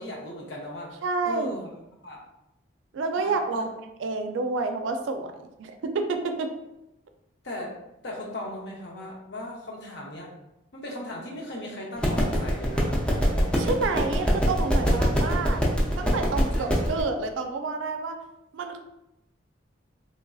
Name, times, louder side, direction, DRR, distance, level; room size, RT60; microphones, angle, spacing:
voice 1, 0.0-0.9 1.2-1.7 2.0-2.2 3.2-3.6 7.4-7.7 8.0-10.3 10.7-13.0 15.2-15.4 16.5-16.8, left 1 dB, 60° left, -1 dB, 0.7 m, -37 dB
voice 2, 1.0-1.6 2.9-3.7 4.0-6.5 13.6-15.6 16.0-18.2 18.5-18.8, right 3 dB, 80° right, 6 dB, 0.3 m, -29 dB
sound 1, 12.0-17.0, equal, 5° left, 0.4 m, -24 dB
3.2 x 2.5 x 2.3 m, 0.90 s
head